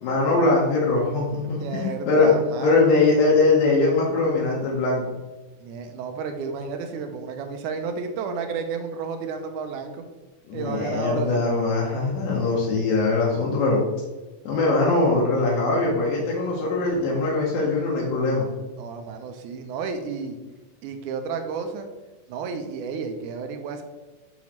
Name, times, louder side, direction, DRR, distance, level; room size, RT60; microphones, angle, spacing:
voice 1, 0.0-2.3 2.6-5.1 10.5-13.8 14.5-18.5, left 3 dB, 80° left, -4 dB, 2.7 m, -21 dB
voice 2, 1.6-3.0 5.6-10.0 10.5-11.4 18.8-20.4 20.8-21.9 22.3-23.8, right 5 dB, 80° right, 6 dB, 1.9 m, -32 dB
5.9 x 5.5 x 3.0 m, 1.2 s
omnidirectional pair, 4.0 m